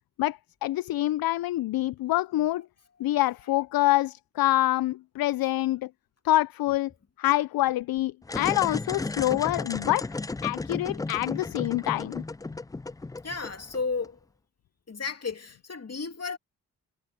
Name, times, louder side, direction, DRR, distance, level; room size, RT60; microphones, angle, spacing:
voice 1, 0.2-2.7 3.0-5.9 6.2-6.9 7.2-10.1 10.4-12.2, left 16 dB, 65° left, 0.5 m, -26 dB
sound 1, 8.2-14.1, left 3 dB, 10° left, 0.3 m, -34 dB
voice 2, 13.2-14.2 14.9-16.4, left 4 dB, 40° left, 2.7 m, -33 dB
supercardioid pair, 50°, 38 cm